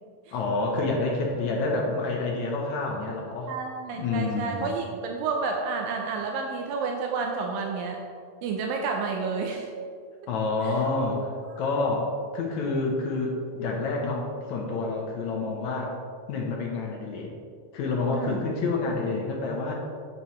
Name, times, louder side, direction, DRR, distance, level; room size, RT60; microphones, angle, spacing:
voice 1, 0.3-3.5 4.0-4.7 10.3-11.3 11.6-16.0 16.3-17.3 17.7-19.7, left 3 dB, 70° left, -1 dB, 1.8 m, -28 dB
voice 2, 3.5-8.0 8.4-9.7 10.6-10.8 18.1-18.4, right 4 dB, 80° right, 1 dB, 2.3 m, -30 dB
8.5 x 7.7 x 3.1 m, 2.2 s
omnidirectional pair, 4.0 m